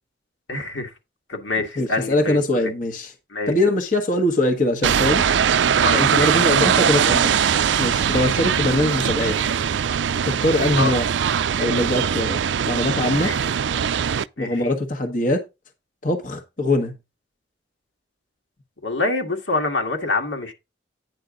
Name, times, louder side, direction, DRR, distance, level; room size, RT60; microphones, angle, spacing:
voice 1, 0.5-0.9 1.3-2.7 3.3-3.5 5.8-6.3 8.1-8.3 10.8-10.9 13.2-13.4 14.4-14.7 18.8-20.5, left 2 dB, 80° left, 2.0 m, -26 dB
voice 2, 1.8-3.1 3.5-5.2 5.9-7.4 7.8-9.4 10.2-11.1 11.6-12.4 12.6-13.3 14.4-15.4 16.0-17.0, left 1 dB, 45° left, 1.2 m, -22 dB
sound 1, 4.8-14.2, right 8 dB, 75° right, 0.4 m, -21 dB
9.4 x 6.4 x 3.8 m
head